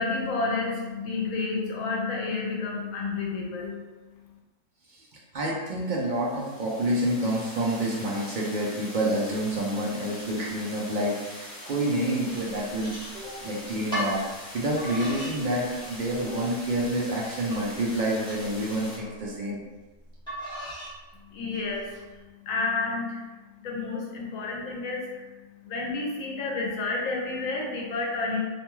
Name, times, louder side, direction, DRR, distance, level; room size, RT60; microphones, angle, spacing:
voice 1, 0.0-3.8 21.3-22.2 22.5-23.2 23.6-25.3 25.6-28.4, left 3 dB, 85° left, -1 dB, 1.0 m, -30 dB
voice 2, 5.3-14.2 14.5-19.6, right 1 dB, 65° right, -4 dB, 0.5 m, -28 dB
sound 1, 5.9-19.0, left 1 dB, 45° left, 0.7 m, -43 dB
sound 2, 12.3-13.5 13.9-14.2 14.8-15.4 15.8-16.3 16.8-16.9 17.5-19.1 20.3-21.0 21.5-22.0, equal, 5° left, 1.0 m, -37 dB
2.6 x 2.2 x 3.0 m, 1.2 s
omnidirectional pair, 1.4 m